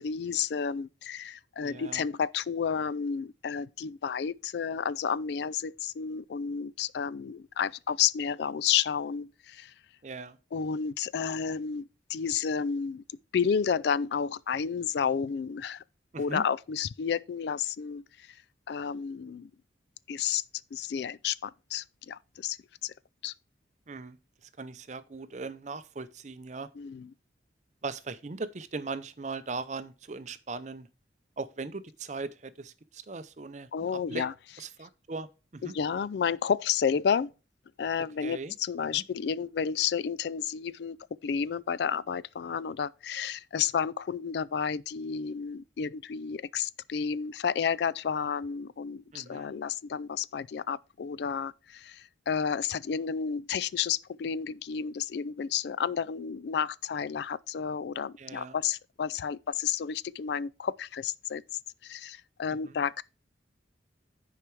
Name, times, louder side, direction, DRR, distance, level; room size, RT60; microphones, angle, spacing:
voice 1, 0.0-9.7 10.5-13.0 13.3-15.8 16.2-18.4 18.7-19.5 20.1-20.4 20.7-22.6 22.8-22.9 23.2-23.3 26.8-27.1 33.7-34.3 35.6-37.3 37.8-41.0 41.2-61.4 61.8-63.0, left 7 dB, 60° left, 0.3 m, -31 dB
voice 2, 1.6-2.0 10.0-10.4 16.1-16.4 23.9-24.2 24.6-26.7 27.8-30.9 31.4-33.7 34.1-34.3 34.6-35.7 38.2-38.5 38.9-39.0 49.1-49.5 58.2-58.6 62.5-62.7, right 3 dB, 40° right, 0.6 m, -39 dB
10.0 x 4.8 x 4.6 m
head